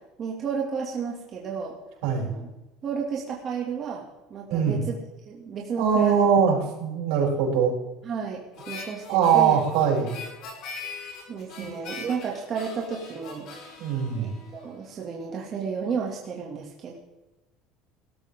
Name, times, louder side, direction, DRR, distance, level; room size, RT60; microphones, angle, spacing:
voice 1, 0.2-1.7 2.2-2.5 2.8-5.0 5.3-6.2 8.0-8.4 8.7-9.0 9.3-9.6 11.3-13.7 14.1-17.0, right 6 dB, 35° right, -2 dB, 2.5 m, -32 dB
voice 2, 4.5-4.8 5.8-7.7 9.1-10.1 11.6-11.7 13.8-14.3, right 7 dB, 85° right, -2 dB, 6.7 m, -22 dB
Harmonica, 8.6-15.0, left 4 dB, 50° left, 4.9 m, -42 dB
19.5 x 13.0 x 3.8 m, 1.0 s
cardioid pair, 155°, 0 cm